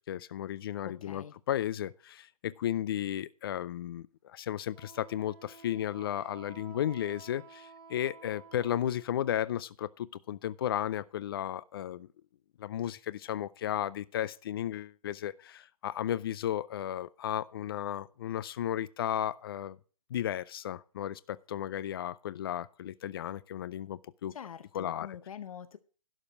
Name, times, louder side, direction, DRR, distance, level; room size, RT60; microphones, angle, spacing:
voice 1, 0.1-12.1 12.6-19.8 20.1-24.3 24.7-25.1, left 11 dB, 35° left, 0.4 m, -34 dB
voice 2, 0.8-1.3 24.3-25.8, left 8 dB, 60° left, 0.8 m, -45 dB
Wind instrument woodwind instrument, 4.7-9.2, right 5 dB, 25° right, 2.1 m, -53 dB
11.5 x 5.0 x 7.2 m
hypercardioid pair, 155°, 20 cm